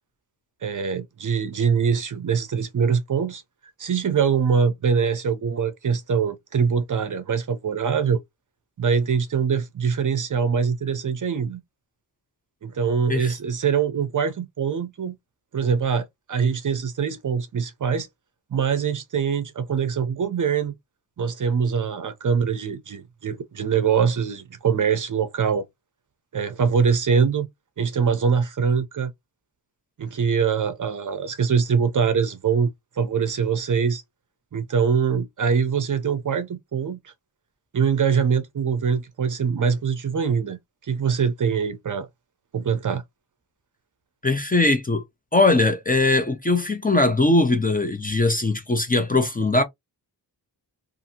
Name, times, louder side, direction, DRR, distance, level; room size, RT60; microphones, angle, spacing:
voice 1, 0.6-3.4 3.8-8.2 8.8-11.6 12.6-15.2 15.5-18.1 18.5-20.7 21.2-25.7 26.3-27.5 27.8-29.1 30.0-32.7 33.0-34.0 34.5-37.1 37.7-42.1 42.5-43.0, right 6 dB, 45° right, 0.5 m, -23 dB
voice 2, 44.2-45.0 45.3-49.6, left 2 dB, 20° left, 0.5 m, -20 dB
2.6 x 2.5 x 2.7 m
wide cardioid pair, 130°, 43 cm